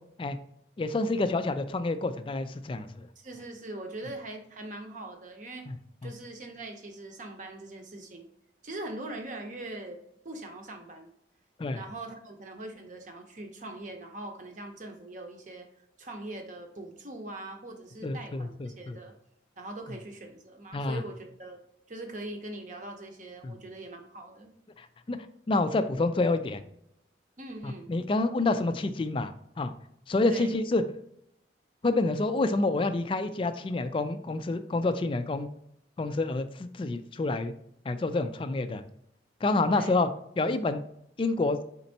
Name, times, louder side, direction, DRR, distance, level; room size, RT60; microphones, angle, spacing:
voice 1, 0.8-3.1 5.7-5.8 6.0-6.1 11.6-11.8 18.0-19.0 20.7-21.0 23.4-23.6 24.8-25.2 25.5-26.6 27.6-29.7 30.1-30.8 31.8-35.5 36.0-37.5 37.9-38.8 39.4-40.1 40.4-40.8 41.2-41.6, left 2 dB, 30° left, 10 dB, 0.3 m, -28 dB
voice 2, 3.2-5.7 6.0-8.3 8.6-10.0 10.2-11.1 11.7-15.7 16.0-19.1 19.6-21.6 21.9-24.5 27.4-27.9 30.3-30.5 39.7-40.0, right 2 dB, 45° right, 4 dB, 0.7 m, -42 dB
4.3 x 4.1 x 2.7 m, 0.73 s
head